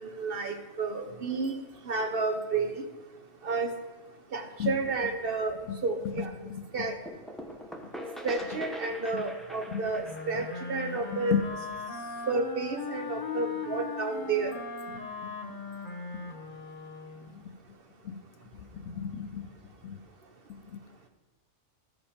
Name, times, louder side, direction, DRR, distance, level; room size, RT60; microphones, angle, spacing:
voice 1, 0.0-1.6 1.9-2.7 3.4-3.7 4.3-5.6 5.8-6.3 6.7-6.9 8.2-11.4 12.3-14.5, right 3 dB, 50° right, 5 dB, 0.8 m, -31 dB
sound 1, 7.1-12.6, equal, ahead, 0.6 m, -43 dB
Wind instrument woodwind instrument, 10.0-17.4, left 4 dB, 40° left, 1.2 m, -39 dB
voice 2, 18.9-19.5 19.8-20.0, left 8 dB, 70° left, 9 dB, 1.0 m, -30 dB
13.5 x 5.2 x 5.1 m, 1.2 s
omnidirectional pair, 1.4 m